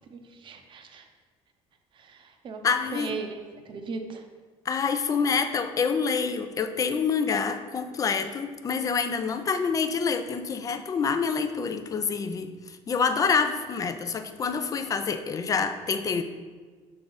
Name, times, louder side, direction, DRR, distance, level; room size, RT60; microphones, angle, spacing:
voice 1, 0.1-1.1 2.0-2.6 2.9-3.4 3.7-4.2, right 4 dB, 40° right, 5 dB, 0.7 m, -37 dB
voice 2, 2.6-3.1 4.7-16.2, left 5 dB, 30° left, 9 dB, 0.4 m, -27 dB
5.9 x 3.9 x 5.4 m, 1.5 s
cardioid pair, 140°, 12 cm